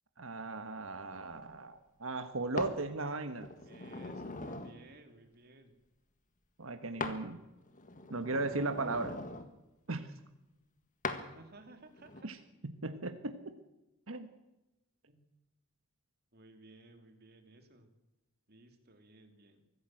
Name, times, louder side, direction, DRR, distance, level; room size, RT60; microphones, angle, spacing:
voice 1, 0.2-3.5 6.6-7.4 8.1-9.2 9.9-10.1 12.2-12.4 12.6-13.6 14.1-14.3, right 3 dB, 75° right, 7 dB, 1.4 m, -37 dB
sound 1, 2.6-2.8 3.4-4.8 7.0-7.2 7.7-9.5 11.0-11.2 12.0-12.2, left 3 dB, 40° left, 1.8 m, -41 dB
voice 2, 3.7-5.7 11.2-12.3 15.1-15.2 16.3-17.9 18.5-19.6, right 2 dB, 50° right, 5 dB, 3.2 m, -57 dB
24.0 x 15.0 x 7.8 m, 0.99 s
head